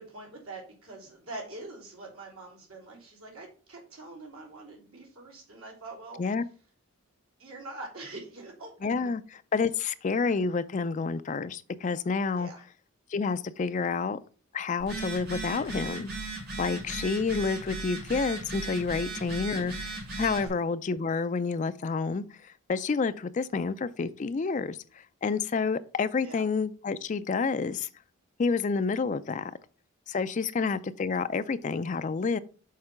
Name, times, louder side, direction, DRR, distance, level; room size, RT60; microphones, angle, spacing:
voice 1, 0.0-6.2 7.4-8.9 12.3-12.6 18.9-19.3 20.4-20.5 26.2-26.5, right 2 dB, 75° right, 3.1 m, -44 dB
voice 2, 8.8-9.2 9.5-12.5 13.1-14.2 14.5-16.1 16.6-27.9 28.4-29.5 30.1-32.4, left 4 dB, 35° left, 0.3 m, -29 dB
Telephone, 14.8-20.5, right 3 dB, 45° right, 2.5 m, -37 dB
6.6 x 3.8 x 5.7 m
head